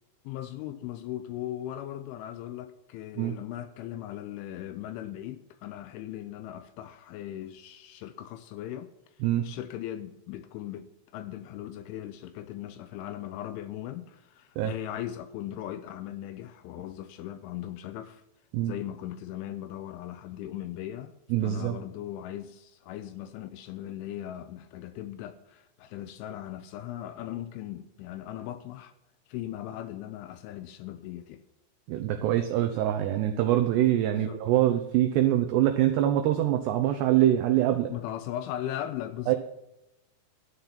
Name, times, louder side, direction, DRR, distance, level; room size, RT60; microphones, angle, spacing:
voice 1, 0.2-8.9 9.4-18.2 18.6-21.2 21.4-28.9 29.3-31.4 34.1-34.4 37.9-39.4, left 12 dB, 80° left, 2.9 m, -38 dB
voice 2, 21.3-21.8 31.9-37.9 39.3-39.4, right 12 dB, 85° right, 2.4 m, -24 dB
13.0 x 9.6 x 5.7 m
omnidirectional pair, 6.0 m